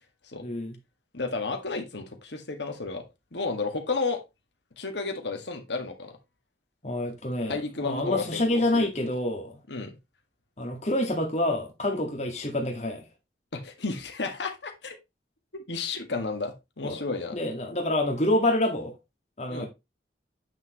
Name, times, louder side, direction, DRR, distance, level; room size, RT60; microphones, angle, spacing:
voice 1, 0.4-0.8 6.8-9.6 10.6-13.0 16.8-17.0 17.3-18.9 19.4-19.7, left 1 dB, 35° left, 1.8 m, -27 dB
voice 2, 1.1-3.0 3.3-4.2 4.8-6.1 7.5-8.9 9.7-9.9 13.5-15.0 15.5-17.4 19.5-19.7, left 3 dB, 75° left, 1.8 m, -32 dB
8.8 x 6.3 x 3.0 m
head